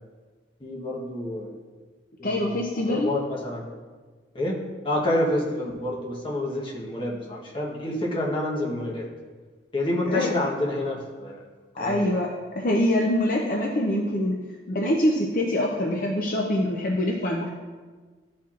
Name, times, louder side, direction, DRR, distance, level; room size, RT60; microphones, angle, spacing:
voice 1, 0.6-1.5 2.2-3.6 4.3-9.1 9.7-11.5 11.7-12.0, left 1 dB, 25° left, -3 dB, 1.0 m, -28 dB
voice 2, 2.2-3.1 10.1-10.3 11.8-12.3 12.6-14.4 14.7-17.5, left 1 dB, 45° left, -1 dB, 0.6 m, -24 dB
12.0 x 4.3 x 2.4 m, 1.4 s
head